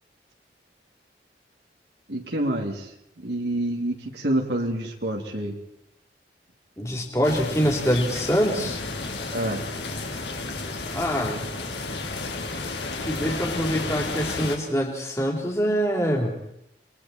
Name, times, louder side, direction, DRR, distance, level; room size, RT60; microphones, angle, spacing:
voice 1, 2.1-2.9 3.2-5.6 9.3-9.6, right 1 dB, 80° right, 1 dB, 2.8 m, -27 dB
voice 2, 6.8-8.8 10.9-11.4 13.1-16.4, equal, 15° left, 1 dB, 4.0 m, -24 dB
sound 1, 7.2-14.6, left 3 dB, 90° left, 3.7 m, -32 dB
30.0 x 22.0 x 4.4 m, 0.77 s
head